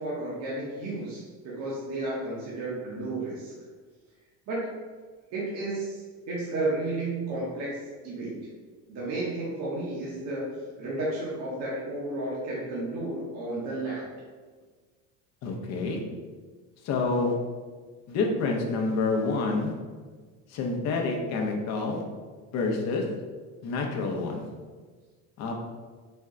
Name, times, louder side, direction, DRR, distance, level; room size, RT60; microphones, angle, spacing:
voice 1, 0.0-3.5 4.5-4.6 5.3-7.8 8.0-8.5 8.9-10.5 10.8-14.1, right 2 dB, 50° right, -6 dB, 0.9 m, -32 dB
voice 2, 15.4-16.0 16.8-17.3 18.1-19.7 20.5-22.0 22.5-23.0 23.6-24.4 25.4-25.5, left 3 dB, 45° left, 1 dB, 0.7 m, -28 dB
4.3 x 2.2 x 3.7 m, 1.5 s
cardioid pair, 145°, 35 cm